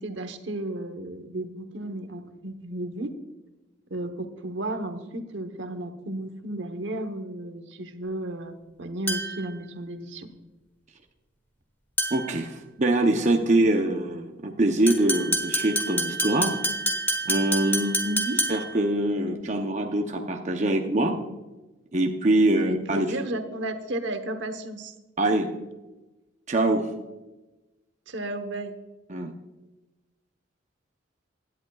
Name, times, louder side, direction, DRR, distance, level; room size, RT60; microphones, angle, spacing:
voice 1, 0.0-3.1 3.9-8.5 8.8-10.3 18.0-18.4 22.6-24.9 25.3-25.4 28.1-28.7, right 1 dB, 70° right, 8 dB, 1.1 m, -33 dB
sound 1, 9.1-9.5 12.0-12.4 14.9-18.8, equal, 10° left, 1.2 m, -28 dB
voice 2, 12.1-16.6 17.3-18.0 18.5-21.1 21.9-23.1 25.2-25.5 26.5-26.9 29.1-29.3, right 1 dB, 40° right, 3 dB, 0.8 m, -24 dB
16.5 x 10.5 x 2.4 m, 1.1 s
head